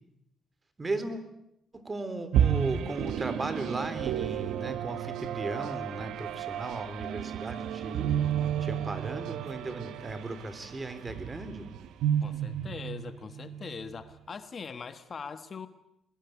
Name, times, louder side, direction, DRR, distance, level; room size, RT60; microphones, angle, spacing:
voice 1, 0.8-1.2 1.7-8.1 8.6-11.7, right 2 dB, 25° right, 11 dB, 3.7 m, -36 dB
sound 1, 2.3-14.0, right 10 dB, 80° right, 1.2 m, -32 dB
voice 2, 12.2-15.7, left 5 dB, 45° left, 11 dB, 1.4 m, -41 dB
21.5 x 21.0 x 9.4 m, 0.80 s
cardioid pair, 90°, 0 cm